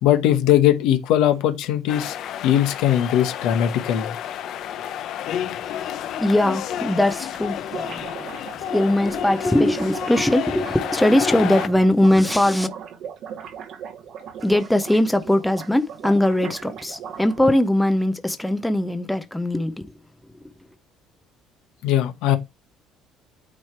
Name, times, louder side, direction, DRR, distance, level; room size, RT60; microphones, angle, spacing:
voice 1, 0.0-2.2 2.4-4.2 21.8-22.4, left 11 dB, 80° left, 1.1 m, -19 dB
sound 1, 1.9-11.7, left 10 dB, 55° left, 0.6 m, -31 dB
voice 2, 6.2-8.3 8.6-12.7 14.4-19.9, left 1 dB, 5° left, 0.5 m, -20 dB
sound 2, 6.7-6.8 7.0-7.1 7.3-17.6, right 8 dB, 55° right, 1.0 m, -38 dB
8.8 x 3.1 x 4.4 m
cardioid pair, 155°, 0 cm